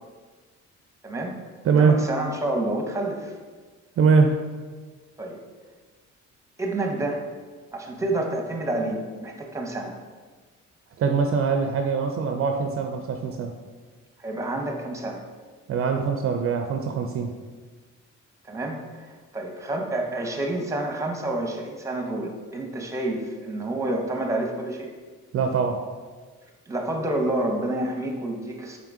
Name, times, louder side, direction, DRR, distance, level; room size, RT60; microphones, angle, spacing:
voice 1, 1.0-3.4 5.2-5.4 6.6-7.3 7.7-10.0 14.2-15.2 18.4-24.9 26.7-28.8, right 1 dB, 10° right, 1 dB, 0.7 m, -29 dB
voice 2, 1.7-2.0 4.0-4.3 11.0-13.5 15.7-17.3 25.3-25.8, right 5 dB, 50° right, 4 dB, 0.4 m, -22 dB
3.7 x 3.7 x 3.6 m, 1.4 s
cardioid pair, 90°, 30 cm